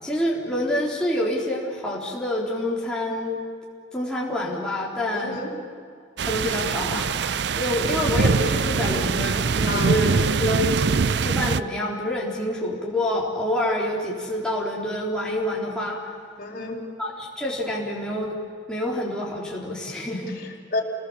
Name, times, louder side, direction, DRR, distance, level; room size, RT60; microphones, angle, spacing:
voice 1, 0.0-3.4 3.9-5.4 6.2-10.9 11.2-16.0 17.0-18.4 18.7-20.4, left 1 dB, 5° left, -5 dB, 4.0 m, -27 dB
voice 2, 5.1-5.6 9.7-10.4 16.4-16.9 20.4-20.8, left 2 dB, 50° left, 0 dB, 4.3 m, -31 dB
sound 1, 6.2-11.6, right 5 dB, 60° right, 0.5 m, -23 dB
29.5 x 20.5 x 7.4 m, 2.3 s
head